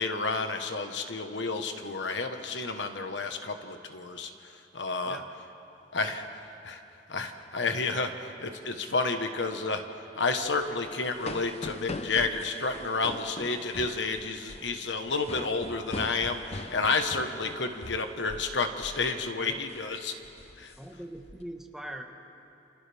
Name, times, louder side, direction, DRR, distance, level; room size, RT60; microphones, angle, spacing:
voice 1, 0.0-5.2 5.9-6.8 7.1-9.8 10.1-20.1 20.6-20.7, left 3 dB, 85° left, 6 dB, 1.3 m, -31 dB
sound 1, 10.5-18.5 18.8-19.1 19.5-19.8 20.2-21.4, left 2 dB, 35° left, 0.7 m, -42 dB
voice 2, 20.8-22.0, right 1 dB, 5° right, 2 dB, 1.4 m, -42 dB
29.0 x 28.5 x 3.5 m, 2.9 s
head